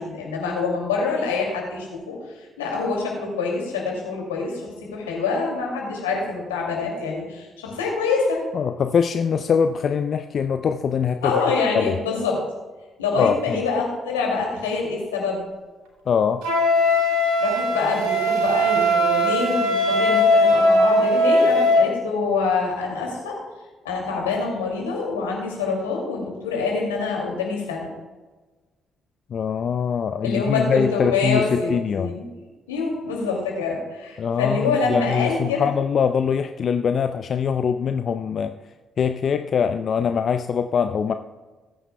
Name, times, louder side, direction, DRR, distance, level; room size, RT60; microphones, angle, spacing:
voice 1, 0.0-2.2 2.6-4.6 4.9-8.4 11.2-12.4 13.0-15.4 17.4-23.4 23.8-27.9 30.2-32.3 32.7-35.7, left 4 dB, 85° left, -1 dB, 2.4 m, -25 dB
voice 2, 8.5-12.0 13.2-13.6 16.1-16.4 29.3-32.1 34.2-38.5 39.0-41.1, left 7 dB, 55° left, 8 dB, 0.5 m, -23 dB
Wind instrument woodwind instrument, 16.4-21.9, left 1 dB, 80° right, 1.9 m, -19 dB
19.5 x 9.1 x 2.2 m, 1.3 s
hypercardioid pair, 45°, 0 cm